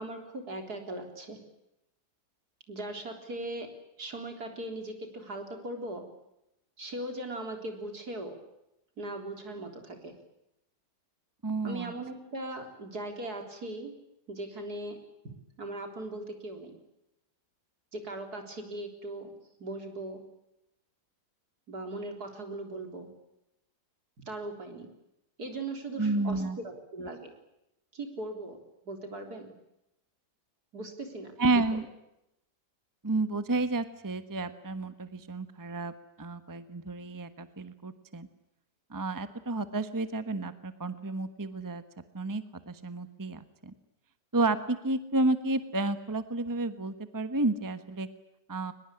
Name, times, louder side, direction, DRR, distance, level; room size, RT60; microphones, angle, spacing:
voice 1, 0.0-1.4 2.7-3.7 4.0-6.0 6.8-8.4 9.0-10.2 11.6-14.0 14.3-15.0 15.6-16.8 17.9-19.3 19.6-20.2 21.7-23.1 24.3-24.9 25.4-27.3 27.9-29.5 30.7-31.8, right 2 dB, 65° right, 5 dB, 4.3 m, -39 dB
voice 2, 11.4-11.9 26.0-26.6 31.4-31.8 33.0-35.9 36.2-38.3 38.9-41.8 42.1-43.7 44.3-48.1 48.5-48.7, right 2 dB, 15° right, 11 dB, 1.1 m, -31 dB
23.0 x 21.0 x 9.9 m, 0.86 s
omnidirectional pair, 1.8 m